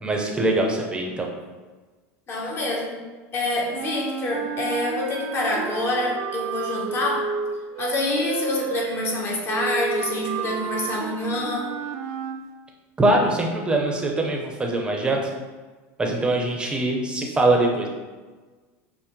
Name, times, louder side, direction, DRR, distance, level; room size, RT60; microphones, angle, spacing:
voice 1, 0.0-1.3 13.0-15.3 16.0-17.9, right 2 dB, 15° right, 0 dB, 0.7 m, -22 dB
voice 2, 2.3-2.9 3.3-7.3 7.8-11.7, left 2 dB, 30° left, -1 dB, 0.9 m, -26 dB
sound 1, 3.7-12.4, right 6 dB, 55° right, 0.3 m, -31 dB
5.6 x 2.1 x 3.1 m, 1.3 s
supercardioid pair, 125°, 7 cm